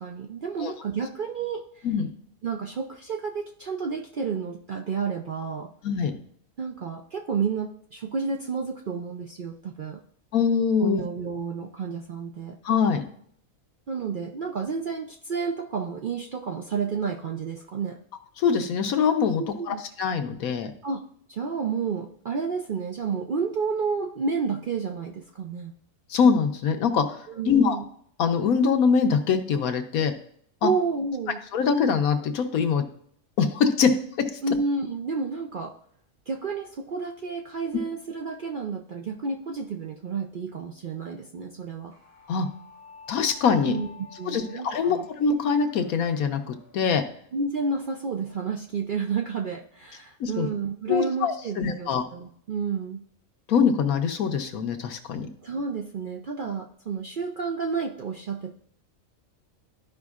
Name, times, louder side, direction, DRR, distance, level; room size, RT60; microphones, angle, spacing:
voice 1, 0.0-1.9 2.4-5.7 6.6-10.0 10.8-12.6 13.9-18.0 19.4-19.8 20.8-21.0 21.3-25.7 27.3-27.9 30.6-31.4 34.4-35.7 36.3-41.9 43.7-43.9 44.2-45.1 47.3-53.0 55.4-58.5, right 5 dB, 60° right, 2 dB, 0.5 m, -30 dB
voice 2, 5.8-6.2 10.3-11.0 12.6-13.0 18.4-20.7 26.1-27.8 28.2-30.1 30.6-30.7 31.5-32.8 33.4-33.9 42.3-42.5 43.1-43.8 44.3-47.0 50.2-50.5 50.9-52.0 53.5-55.3, left 6 dB, 85° left, 6 dB, 1.3 m, -23 dB
sound 1, 41.9-47.0, left 4 dB, 35° left, 1.6 m, -49 dB
13.0 x 5.1 x 2.4 m, 0.63 s
omnidirectional pair, 1.5 m